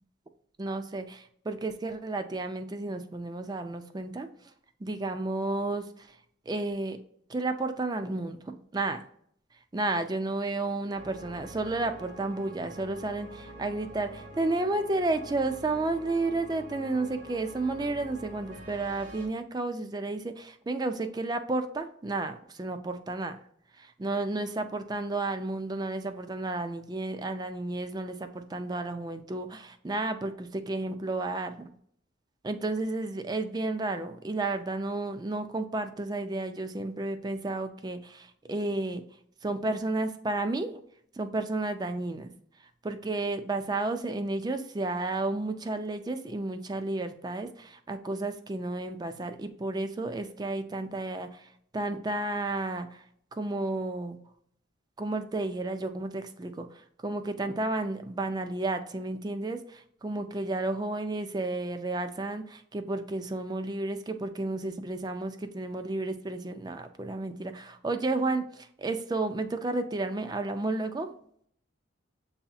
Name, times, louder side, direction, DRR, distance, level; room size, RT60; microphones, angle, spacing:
voice 1, 0.6-4.3 4.8-6.1 6.5-7.0 7.3-9.0 9.7-23.4 23.8-31.7 32.4-39.0 39.4-40.8 41.2-42.3 42.8-53.0 53.3-54.2 55.0-56.7 57.0-71.1, right 2 dB, 20° right, 8 dB, 0.3 m, -32 dB
sound 1, 10.9-19.3, right 1 dB, 40° right, 1.1 m, -46 dB
7.8 x 2.8 x 2.3 m, 0.66 s
head